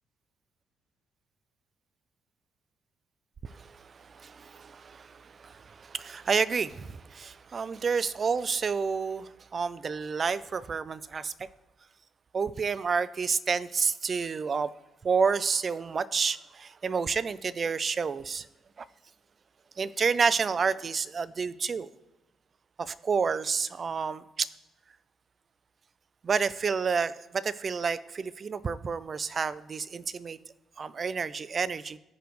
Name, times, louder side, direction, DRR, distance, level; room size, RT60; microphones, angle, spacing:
voice 1, 3.4-11.5 12.3-14.7 15.0-18.5 18.8-18.9 19.8-21.9 22.8-24.5 26.2-30.4 30.8-32.0, right 5 dB, 40° right, 17 dB, 0.4 m, -29 dB
15.0 x 5.1 x 3.1 m, 0.95 s
cardioid pair, 90°, 0 cm